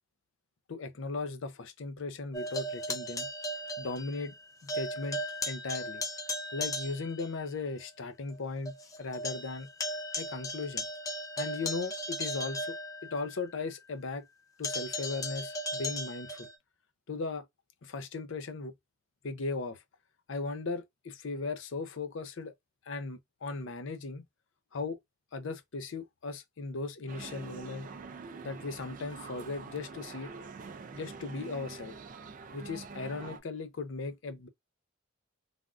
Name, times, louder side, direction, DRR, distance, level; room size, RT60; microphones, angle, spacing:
voice 1, 0.7-3.3 3.8-4.3 4.6-6.0 6.5-9.7 10.2-10.9 11.4-12.7 13.0-14.3 14.6-16.5 17.1-17.4 17.8-18.7 19.2-19.8 20.3-22.5 22.9-24.2 24.7-25.0 25.3-27.9 28.4-30.3 30.9-31.9 32.5-34.5, left 3 dB, 65° left, 0.5 m, -37 dB
sound 1, 2.3-4.4 4.7-7.3 7.8-7.9 8.3-8.4 8.7-13.4 14.6-16.6, left 1 dB, 15° left, 0.5 m, -37 dB
sound 2, 27.1-33.4, right 4 dB, 40° right, 0.3 m, -45 dB
3.4 x 2.3 x 2.4 m
head